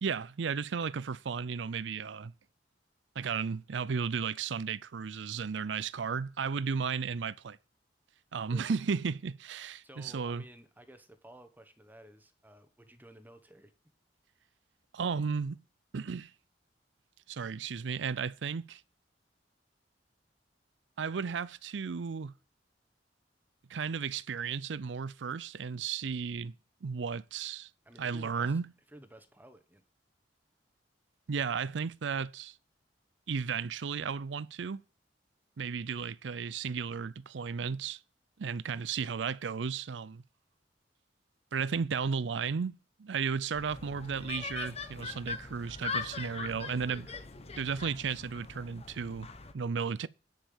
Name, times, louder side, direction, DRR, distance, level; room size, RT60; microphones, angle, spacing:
voice 1, 0.0-2.3 3.2-7.6 8.3-10.4 14.9-15.6 15.9-16.3 17.3-18.8 21.0-22.3 23.7-26.5 26.8-27.7 28.0-28.7 31.3-32.6 33.3-34.8 35.6-38.0 38.4-40.2 41.5-47.1 47.6-49.3 49.5-50.1, right 6 dB, 80° right, 0.5 m, -34 dB
voice 2, 9.8-13.7 27.8-28.6 28.9-29.8 47.1-47.2, right 1 dB, 10° right, 1.1 m, -54 dB
sound 1, 43.5-49.5, left 4 dB, 35° left, 1.1 m, -41 dB
10.0 x 5.6 x 7.1 m
head